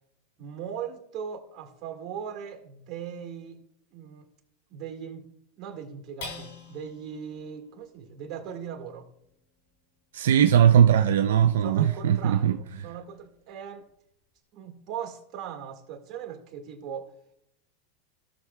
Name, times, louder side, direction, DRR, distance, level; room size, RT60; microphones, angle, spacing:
voice 1, 0.4-3.6 3.9-4.3 4.7-9.1 11.6-13.9 14.5-17.1, right 8 dB, 45° right, 1.8 m, -39 dB
sound 1, 6.2-12.9 13.4-13.5 13.9-14.4, left 3 dB, 80° left, 3.6 m, -49 dB
voice 2, 10.1-12.6, right 9 dB, 85° right, 0.5 m, -19 dB
16.5 x 6.4 x 2.3 m
supercardioid pair, 120°, 0 cm